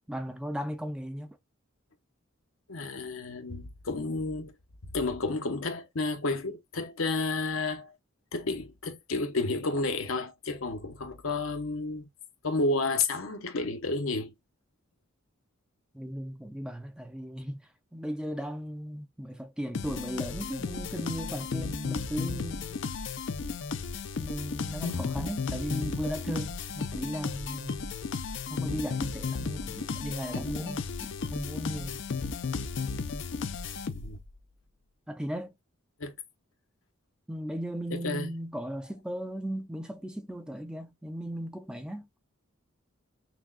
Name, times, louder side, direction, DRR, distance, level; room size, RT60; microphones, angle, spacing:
voice 1, 0.1-1.4 15.9-17.6 17.9-22.8 24.2-27.9 28.5-32.0 35.1-35.5 37.3-42.2, equal, 5° right, 0.5 m, -36 dB
voice 2, 2.7-4.5 4.8-7.9 8.3-12.1 12.4-14.3 33.9-34.2 36.0-36.1 37.9-38.3, left 3 dB, 80° left, 0.9 m, -31 dB
sound 1, 19.7-34.3, left 5 dB, 60° left, 0.5 m, -34 dB
6.0 x 2.3 x 2.3 m
head